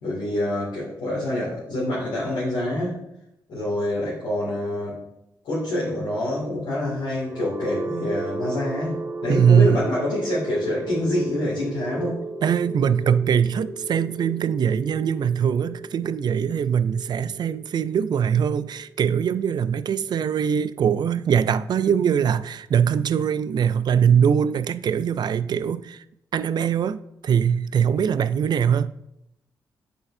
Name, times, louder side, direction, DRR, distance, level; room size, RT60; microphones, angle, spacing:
voice 1, 0.0-3.0 3.5-5.0 5.4-8.9 9.2-12.2, left 1 dB, 90° left, 2.2 m, -26 dB
sound 1, 7.2-21.0, right 2 dB, 25° right, 0.7 m, -35 dB
voice 2, 9.3-9.9 12.4-26.0 26.3-28.9, right 8 dB, 60° right, 0.3 m, -22 dB
8.9 x 4.3 x 2.6 m
cardioid pair, 55°, 8 cm